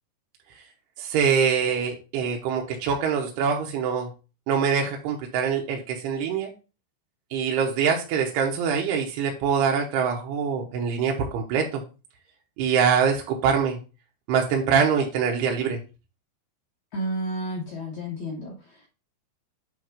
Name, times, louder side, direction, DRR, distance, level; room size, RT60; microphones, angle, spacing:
voice 1, 1.0-4.1 4.5-6.5 7.3-11.8 12.6-13.8 14.3-15.8, right 6 dB, 75° right, 1 dB, 2.8 m, -24 dB
voice 2, 16.9-18.9, right 1 dB, 80° left, -1 dB, 1.6 m, -31 dB
8.1 x 3.5 x 5.0 m, 0.32 s
omnidirectional pair, 4.9 m